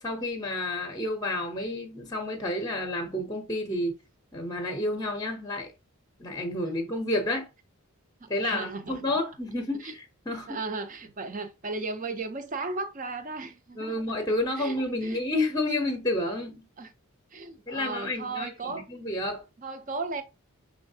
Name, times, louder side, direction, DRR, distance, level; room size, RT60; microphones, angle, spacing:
voice 1, 0.0-4.0 4.3-5.7 6.2-7.5 8.3-10.6 13.7-16.6 17.7-19.4, left 1 dB, 15° left, 0.7 m, -30 dB
voice 2, 8.2-9.2 9.8-9.9 10.5-14.0 14.6-15.2 16.8-16.9 17.3-18.9 19.6-20.2, right 3 dB, 35° right, 0.5 m, -35 dB
5.5 x 3.2 x 2.7 m
head